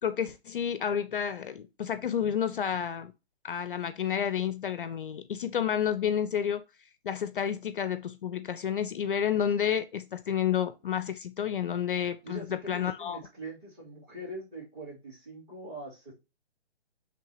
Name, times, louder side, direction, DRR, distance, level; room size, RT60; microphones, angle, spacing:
voice 1, 0.0-3.1 3.4-6.6 7.0-13.2, left 8 dB, 55° left, 0.5 m, -30 dB
voice 2, 12.2-16.1, right 1 dB, 20° right, 3.3 m, -43 dB
9.7 x 3.4 x 2.9 m
hypercardioid pair, 155°, 33 cm